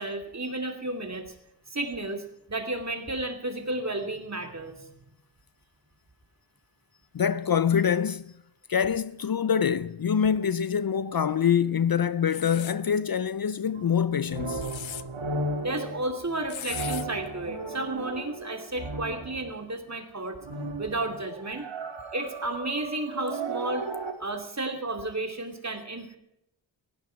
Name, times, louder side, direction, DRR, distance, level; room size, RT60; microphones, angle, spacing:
voice 1, 0.0-1.3 1.7-4.9 15.6-20.4 20.8-21.7 22.1-23.9 24.2-26.2, right 2 dB, 35° right, 2.8 m, -32 dB
voice 2, 7.1-8.3 8.7-14.7, left 7 dB, 50° left, 0.6 m, -25 dB
sound 1, 12.3-12.8 14.4-15.0 16.5-17.0, left 10 dB, 90° left, 0.7 m, -37 dB
sound 2, 13.7-19.7 20.4-24.1, right 2 dB, 80° right, 2.1 m, -35 dB
17.5 x 15.5 x 4.7 m
wide cardioid pair, 90°, 45 cm